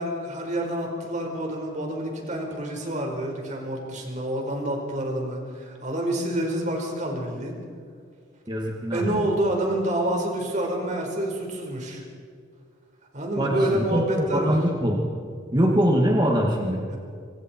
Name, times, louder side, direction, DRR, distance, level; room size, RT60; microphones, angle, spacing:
voice 1, 0.0-7.6 8.9-12.0 13.1-14.6 16.9-17.0, right 1 dB, 40° right, 1 dB, 5.1 m, -28 dB
voice 2, 8.5-9.3 13.4-15.0 15.5-16.8, equal, 20° right, -1 dB, 2.4 m, -23 dB
26.5 x 26.5 x 4.7 m, 2.2 s
head